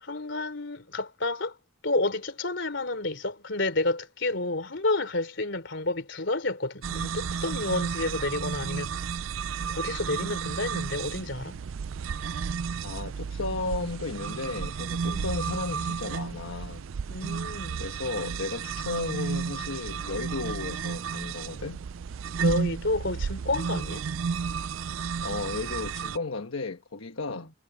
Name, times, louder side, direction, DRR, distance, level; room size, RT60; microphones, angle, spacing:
voice 1, 0.0-1.5 1.8-9.0 9.7-11.6 15.1-15.2 17.1-17.8 22.4-24.0 27.3-27.5, left 2 dB, 65° left, 3.3 m, -30 dB
sound 1, 6.8-26.2, right 6 dB, 80° right, 0.4 m, -32 dB
voice 2, 12.8-16.8 17.8-21.8 25.2-27.5, left 3 dB, 85° left, 1.2 m, -34 dB
head